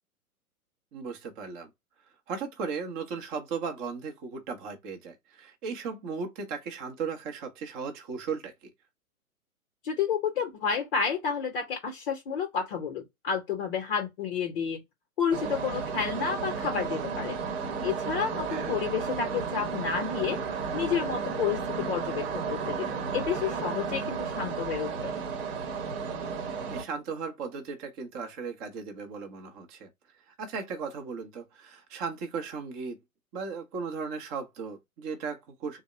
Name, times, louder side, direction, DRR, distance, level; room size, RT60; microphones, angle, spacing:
voice 1, 0.9-1.7 2.3-8.7 18.5-18.7 26.7-29.9 30.4-33.0 33.3-35.8, right 5 dB, 20° right, 0.7 m, -36 dB
voice 2, 9.8-14.8 15.2-17.4 17.8-20.4 20.7-25.2, left 7 dB, 40° left, 0.8 m, -30 dB
sound 1, 15.3-26.8, right 5 dB, 45° right, 1.0 m, -33 dB
3.4 x 2.1 x 4.2 m
figure-of-eight pair, 115°, 44 cm